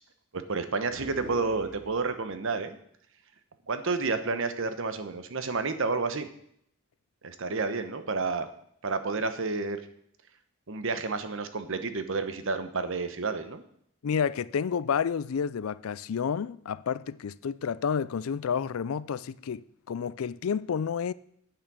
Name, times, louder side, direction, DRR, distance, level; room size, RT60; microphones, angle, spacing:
voice 1, 0.3-2.8 3.7-6.3 7.2-8.5 8.8-9.8 10.7-13.6, right 4 dB, 65° right, 1.0 m, -30 dB
sound 1, 0.8-2.4, right 1 dB, 40° right, 2.4 m, -44 dB
voice 2, 14.0-21.1, left 7 dB, 75° left, 0.4 m, -30 dB
9.0 x 8.9 x 6.2 m
head